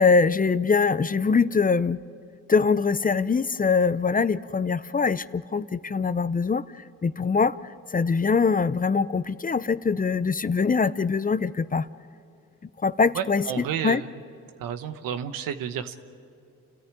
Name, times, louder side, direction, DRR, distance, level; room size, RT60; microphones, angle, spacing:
voice 1, 0.0-2.0 2.5-6.6 7.0-7.6 7.9-11.9 12.8-14.0, left 5 dB, 25° left, 15 dB, 0.6 m, -23 dB
voice 2, 13.1-14.1 14.6-16.0, right 8 dB, 85° right, 10 dB, 1.2 m, -31 dB
30.0 x 14.0 x 9.0 m, 2.6 s
supercardioid pair, 60°, 33 cm